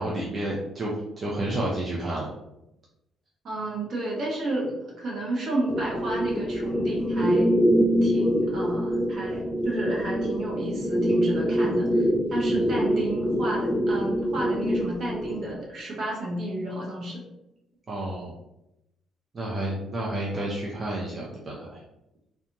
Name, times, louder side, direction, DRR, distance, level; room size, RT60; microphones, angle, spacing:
voice 1, 0.0-2.3 12.5-12.7 17.9-18.3 19.3-21.8, right 1 dB, 40° right, -4 dB, 0.6 m, -30 dB
voice 2, 3.4-7.5 8.0-17.2, right 1 dB, 60° right, -3 dB, 1.0 m, -32 dB
sound 1, 5.7-15.6, equal, 20° left, 0.4 m, -25 dB
2.5 x 2.3 x 2.9 m, 0.88 s
hypercardioid pair, 50°, 0 cm